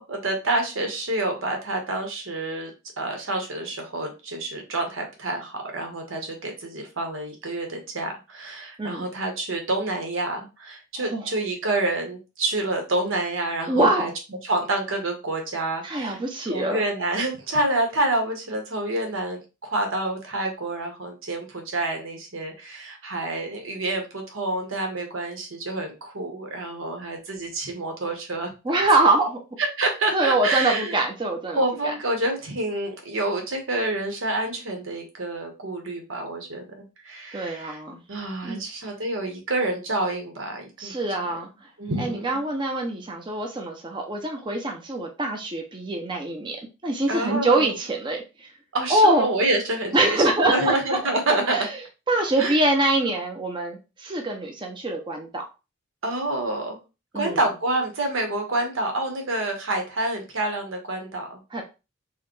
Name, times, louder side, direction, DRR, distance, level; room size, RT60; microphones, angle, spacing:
voice 1, 0.1-2.7 3.0-14.1 14.4-16.2 16.5-28.5 29.6-31.0 31.5-36.6 37.0-37.8 38.1-41.3 41.8-42.4 47.1-47.7 48.7-51.6 52.4-52.6 56.0-56.8 57.1-61.4, right 2 dB, 85° right, 3 dB, 1.2 m, -28 dB
voice 2, 13.7-14.1 15.8-16.8 28.6-29.4 30.1-31.9 37.3-38.0 38.4-38.6 40.8-41.5 42.0-46.6 46.8-48.5 48.9-49.3 49.9-51.8 52.1-55.4 57.1-57.4 61.5-61.6, right 2 dB, 25° right, 2 dB, 0.6 m, -24 dB
4.7 x 2.2 x 3.1 m, 0.29 s
head